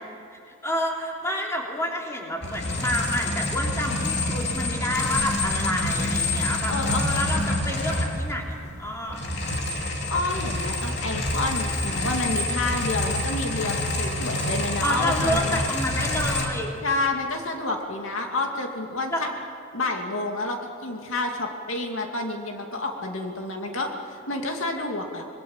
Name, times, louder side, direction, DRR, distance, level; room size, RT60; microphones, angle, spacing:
voice 1, 0.3-9.2 14.8-16.7 19.1-19.3, equal, 15° left, -1 dB, 3.3 m, -29 dB
sound 1, 2.4-8.5 8.8-16.5, left 1 dB, 55° left, 3.0 m, -27 dB
voice 2, 6.7-7.2 10.1-15.6 16.8-19.3 19.7-25.2, left 2 dB, 80° left, 2 dB, 2.5 m, -29 dB
26.5 x 21.5 x 7.4 m, 2.5 s
head